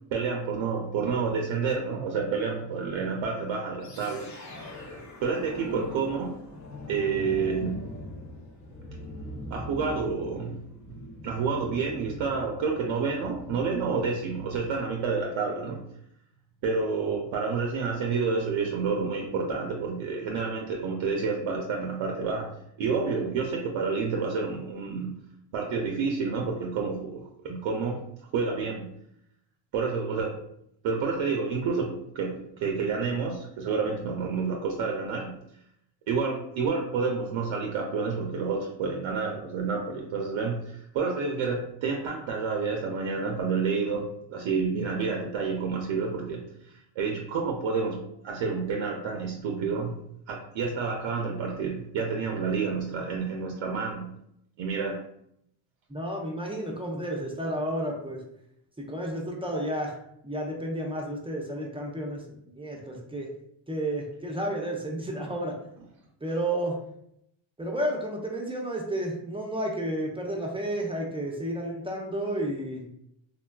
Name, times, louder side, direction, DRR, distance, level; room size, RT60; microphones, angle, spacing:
voice 1, 0.1-4.7 5.2-6.3 6.9-7.8 9.5-15.8 16.6-22.5 22.8-25.2 25.5-28.0 28.3-28.9 29.7-30.4 30.8-35.4 36.1-49.9 50.3-54.2 54.6-55.0, right 5 dB, 70° right, 1 dB, 0.6 m, -29 dB
sound 1, 3.8-14.9, left 2 dB, 35° left, 0.6 m, -42 dB
voice 2, 55.9-58.2 58.9-59.9 60.2-63.3 63.7-65.6 66.2-66.8 67.6-72.9, right 1 dB, 10° right, -1 dB, 0.6 m, -31 dB
3.5 x 2.2 x 2.2 m, 0.76 s
cardioid pair, 70°, 48 cm